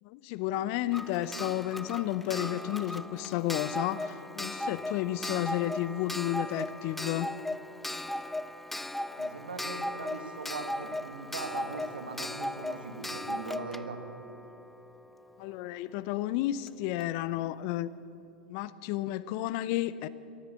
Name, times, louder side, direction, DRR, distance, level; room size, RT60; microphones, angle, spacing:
voice 1, 0.0-7.3 15.4-17.9 18.5-20.1, left 14 dB, 50° left, 17 dB, 0.6 m, -32 dB
Clock, 0.9-15.5 16.7-16.8 17.0-17.1, left 1 dB, 5° left, 0.4 m, -37 dB
voice 2, 9.2-14.0, right 3 dB, 85° right, 6 dB, 1.7 m, -40 dB
13.0 x 13.0 x 8.4 m, 2.6 s
hypercardioid pair, 100°, 5 cm